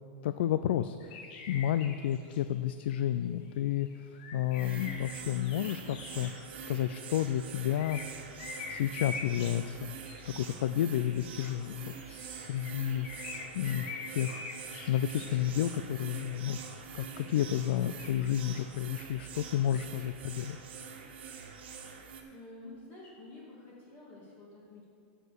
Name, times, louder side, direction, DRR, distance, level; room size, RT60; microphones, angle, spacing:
voice 1, 0.2-6.3 6.7-8.0 8.7-10.0 10.3-13.3 13.5-16.6 16.9-20.6, left 11 dB, 80° left, 12 dB, 0.3 m, -31 dB
sound 1, 1.0-2.5 3.5-7.4 7.7-10.6 11.6-16.1 17.7-18.1, left 4 dB, 60° left, 1.1 m, -45 dB
sound 2, 4.5-22.2, right 6 dB, 85° right, 1.5 m, -45 dB
voice 2, 22.3-24.8, left 2 dB, 35° left, -5 dB, 2.2 m, -50 dB
8.8 x 6.6 x 6.7 m, 2.4 s
supercardioid pair, 155°, 6 cm